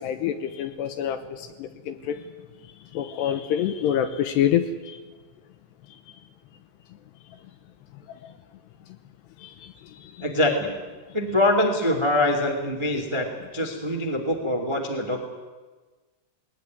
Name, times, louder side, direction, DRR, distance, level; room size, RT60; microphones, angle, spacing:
voice 1, 0.0-2.2 2.9-5.0 8.2-8.3 9.4-9.7 10.0-10.1, left 9 dB, 75° left, 9 dB, 2.8 m, -27 dB
voice 2, 10.2-10.7 11.1-13.3 13.5-15.3, left 1 dB, 15° right, 4 dB, 0.9 m, -24 dB
19.5 x 18.5 x 9.5 m, 1.3 s
omnidirectional pair, 5.6 m